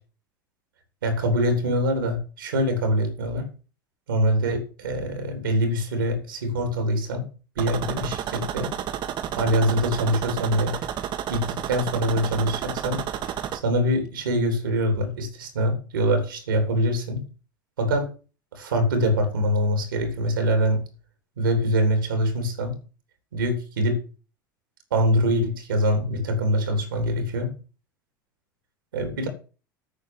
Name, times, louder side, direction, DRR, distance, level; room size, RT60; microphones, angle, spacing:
voice 1, 1.0-3.5 4.1-7.2 7.5-8.7 9.3-10.7 11.3-13.0 13.5-17.2 17.8-18.1 18.5-20.8 21.4-22.7 23.3-24.0 24.9-27.5 28.9-29.3, equal, 80° right, 7 dB, 3.3 m, -24 dB
sound 1, 7.6-13.6, right 10 dB, 45° right, 1.5 m, -31 dB
9.2 x 6.5 x 7.9 m, 0.36 s
hypercardioid pair, 80°, 11 cm